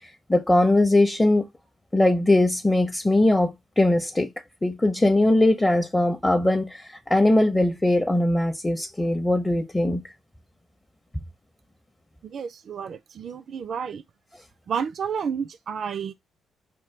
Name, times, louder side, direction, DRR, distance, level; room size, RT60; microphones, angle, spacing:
voice 1, 0.3-1.4 1.9-4.3 4.6-10.0, left 1 dB, 15° left, 0.6 m, -20 dB
voice 2, 12.2-14.0 14.7-16.1, right 7 dB, 55° right, 0.3 m, -31 dB
4.4 x 2.2 x 3.2 m
cardioid pair, 105°, 0 cm